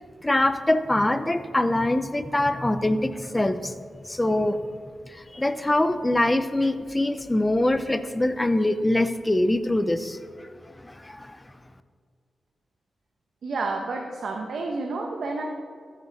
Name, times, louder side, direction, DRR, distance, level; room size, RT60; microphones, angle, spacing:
voice 1, 0.2-3.7 4.0-4.6 5.1-10.2 10.8-11.4, left 1 dB, 15° left, 11 dB, 0.6 m, -23 dB
voice 2, 13.4-15.4, right 3 dB, 75° right, 1 dB, 1.1 m, -30 dB
14.5 x 9.7 x 4.1 m, 2.1 s
wide cardioid pair, 110°, 0 cm